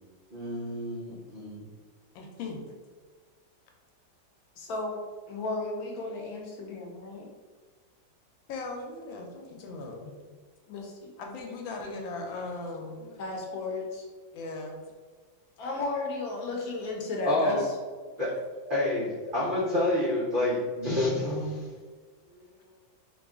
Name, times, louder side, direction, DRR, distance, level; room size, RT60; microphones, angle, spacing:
voice 1, 0.3-1.6 17.2-17.6 18.2-18.3 18.7-21.7, left 1 dB, 85° right, -7 dB, 0.4 m, -28 dB
voice 2, 2.1-2.6 8.5-10.1 11.2-13.2 14.3-14.8 15.7-15.8 18.2-18.3, left 3 dB, 90° left, 2 dB, 1.4 m, -38 dB
voice 3, 4.6-5.0 5.3-7.3 10.0-10.1 10.7-11.1 13.2-14.0 15.6-17.7, left 3 dB, 65° left, -1 dB, 1.0 m, -34 dB
3.5 x 2.4 x 3.5 m, 1.5 s
omnidirectional pair, 2.0 m